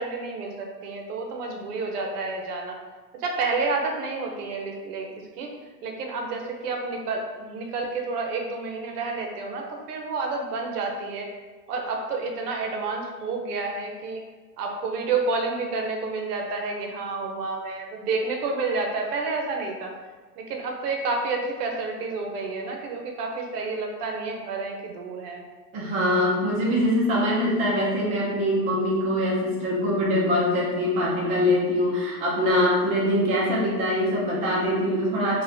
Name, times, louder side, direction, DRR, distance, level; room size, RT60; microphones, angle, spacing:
voice 1, 0.0-2.8 3.2-5.5 5.8-11.3 11.7-14.2 14.6-19.9 20.4-25.4, right 3 dB, 70° right, 2 dB, 0.8 m, -30 dB
voice 2, 25.7-35.4, left 1 dB, 15° right, -5 dB, 0.4 m, -23 dB
3.9 x 2.2 x 2.7 m, 1.3 s
hypercardioid pair, 120°, 49 cm